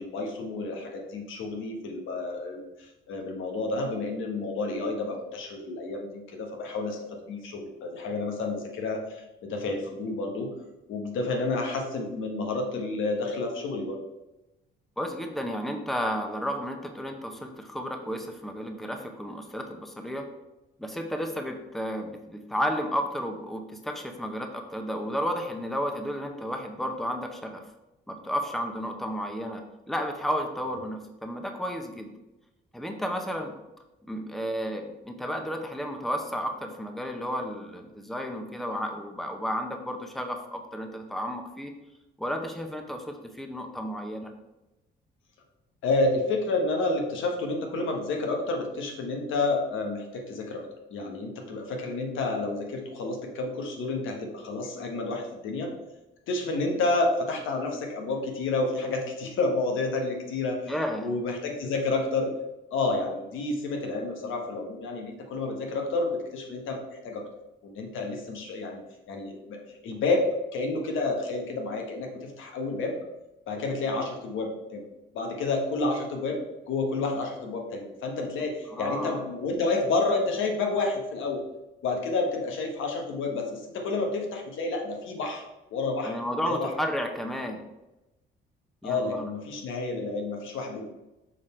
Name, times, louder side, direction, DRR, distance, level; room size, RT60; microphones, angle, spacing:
voice 1, 0.0-7.0 7.3-10.5 10.9-14.0 45.8-50.7 50.9-55.7 56.3-60.7 61.0-62.3 62.7-67.3 67.6-68.8 69.1-72.9 73.5-74.8 75.1-76.4 76.7-81.4 81.8-85.4 85.7-86.7 88.8-90.9, left 3 dB, 80° left, 2 dB, 1.2 m, -30 dB
voice 2, 15.0-20.3 20.8-27.6 28.1-32.1 32.7-33.5 34.1-41.7 42.2-44.3 60.7-61.1 78.7-79.2 86.0-87.6 88.8-89.3, equal, ahead, 4 dB, 0.8 m, -32 dB
6.3 x 3.7 x 4.3 m, 0.98 s
cardioid pair, 90°, 20 cm